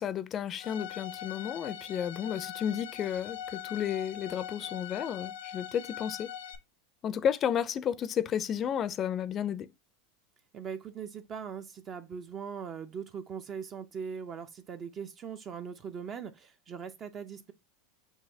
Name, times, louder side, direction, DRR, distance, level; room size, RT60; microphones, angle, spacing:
voice 1, 0.0-6.3 7.0-9.7, left 9 dB, 30° left, 0.4 m, -32 dB
Bowed string instrument, 0.6-6.6, left 10 dB, 75° left, 0.6 m, -42 dB
voice 2, 10.5-17.5, right 7 dB, 30° right, 0.5 m, -40 dB
6.3 x 2.9 x 2.6 m
supercardioid pair, 125°, 0 cm